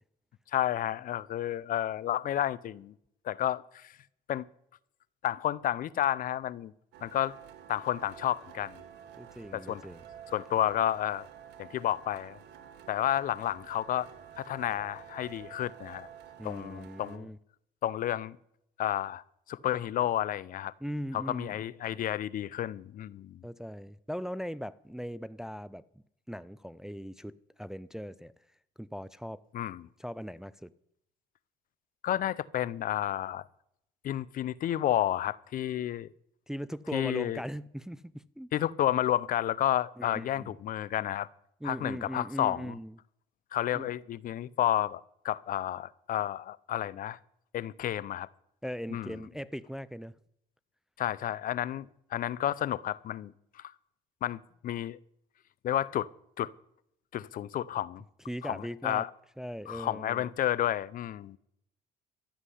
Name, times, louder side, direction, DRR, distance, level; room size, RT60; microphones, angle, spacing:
voice 1, 0.5-2.9 3.2-3.9 4.3-4.5 5.2-6.7 7.0-7.3 7.7-8.8 9.5-9.8 10.3-11.3 11.6-12.4 12.9-14.1 14.4-16.1 16.4-17.3 17.8-18.4 18.8-19.2 19.5-20.7 21.1-23.4 29.5-29.8 32.0-33.5 34.0-36.1 36.9-37.4 38.5-41.3 41.6-42.8 43.5-47.2 47.5-48.3 48.9-49.2 51.0-53.7 54.2-55.0 55.6-56.1 56.4-56.5 57.1-58.0 58.4-59.1 59.7-61.4, left 12 dB, 55° left, 0.6 m, -31 dB
sound 1, 6.9-17.2, right 9 dB, 85° right, 1.5 m, -50 dB
voice 2, 9.2-10.0 16.4-17.4 20.8-21.5 23.4-25.8 26.3-28.3 28.8-29.4 30.0-30.7 36.5-38.5 40.0-40.5 41.6-43.0 43.7-43.9 48.6-50.1 58.3-59.1 59.4-60.3, equal, 5° right, 0.4 m, -39 dB
13.0 x 7.4 x 9.9 m
cardioid pair, 110°, 17 cm